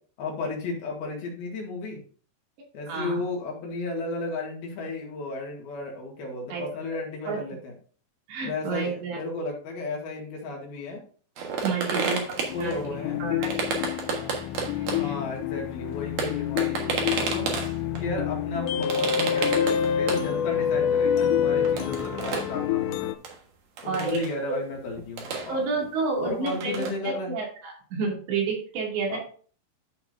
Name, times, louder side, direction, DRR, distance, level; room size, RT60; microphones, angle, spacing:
voice 1, 0.2-2.0 2.7-7.7 8.4-11.0 11.8-12.2 12.5-13.2 14.0-14.4 14.9-17.5 18.0-23.1 23.8-25.6 26.2-27.3 29.1-29.2, left 2 dB, 65° left, -1 dB, 3.8 m, -34 dB
voice 2, 2.9-3.2 6.5-6.7 7.3-7.4 8.3-9.2 11.6-12.2 12.6-12.8 13.2-13.5 14.8-15.2 23.8-24.6 25.5-29.2, right 4 dB, 75° right, -1 dB, 4.6 m, -30 dB
sound 1, 11.4-12.8 13.4-15.1 15.7-15.8 15.9-18.1 18.8-20.3 20.5-20.6 21.0-21.1 21.6-22.6 23.2-23.4 23.8-24.3 24.7-25.9 26.3-26.9, right 4 dB, 60° right, 2.0 m, -31 dB
sound 2, 12.5-23.1, left 9 dB, 80° left, 2.9 m, -27 dB
13.0 x 5.8 x 2.6 m, 0.42 s
omnidirectional pair, 5.1 m